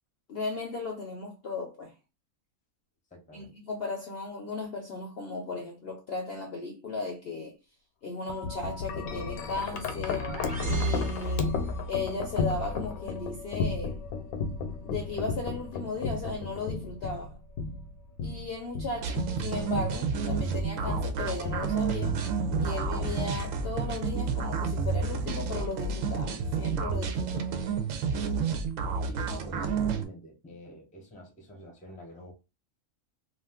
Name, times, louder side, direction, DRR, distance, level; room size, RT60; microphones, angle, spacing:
voice 1, 0.3-1.9 3.3-7.6 8.0-10.3 10.6-11.6 11.9-14.0 14.8-17.4 18.2-22.2 22.6-27.5, left 3 dB, 60° left, 0.6 m, -36 dB
voice 2, 3.1-3.5 29.0-32.3, equal, 10° left, 0.5 m, -47 dB
Wind chime, 8.3-24.5, left 4 dB, 80° left, 1.0 m, -35 dB
sound 1, 9.7-12.0, right 1 dB, 40° right, 1.0 m, -33 dB
sound 2, 19.0-30.0, right 5 dB, 70° right, 0.9 m, -30 dB
2.5 x 2.4 x 3.5 m
omnidirectional pair, 1.5 m